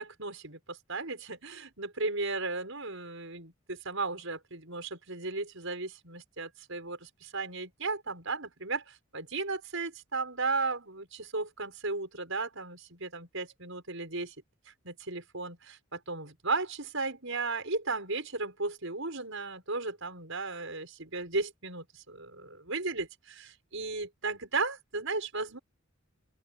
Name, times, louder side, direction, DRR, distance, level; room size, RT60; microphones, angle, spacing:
voice 1, 0.0-14.3 14.7-25.6, right 3 dB, 65° right, 6.1 m, -35 dB
open air
head